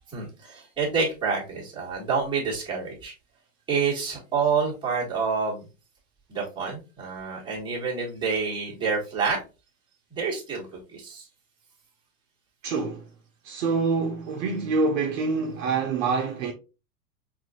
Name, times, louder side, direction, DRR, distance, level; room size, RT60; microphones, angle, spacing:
voice 1, 0.1-3.1 3.7-5.7 6.3-9.4 10.1-11.3, right 5 dB, 10° right, 1.6 m, -28 dB
voice 2, 12.6-13.1 13.4-16.5, right 4 dB, 50° right, 0.7 m, -26 dB
5.7 x 2.5 x 2.2 m
supercardioid pair, 150°, 50 cm